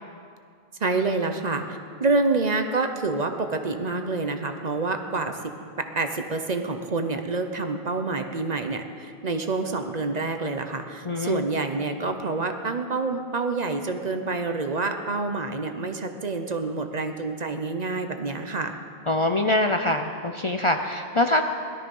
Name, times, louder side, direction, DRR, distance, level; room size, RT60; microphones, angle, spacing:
voice 1, 0.8-5.4 5.8-18.7, right 3 dB, 45° right, 6 dB, 0.9 m, -27 dB
voice 2, 11.1-11.4 19.1-21.4, left 1 dB, 35° left, 5 dB, 0.6 m, -24 dB
17.5 x 12.5 x 5.4 m, 2.3 s
omnidirectional pair, 1.1 m